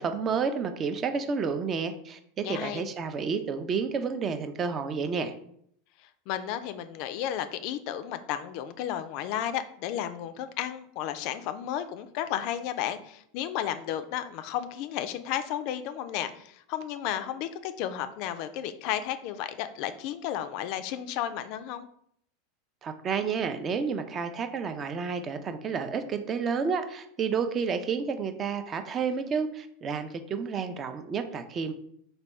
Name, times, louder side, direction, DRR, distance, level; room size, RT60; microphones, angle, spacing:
voice 1, 0.0-5.3 22.8-31.7, right 5 dB, 30° right, 8 dB, 0.4 m, -30 dB
voice 2, 2.4-2.8 6.0-21.9, left 11 dB, 55° left, 11 dB, 0.3 m, -33 dB
3.4 x 2.2 x 4.2 m, 0.68 s
hypercardioid pair, 110°, 0 cm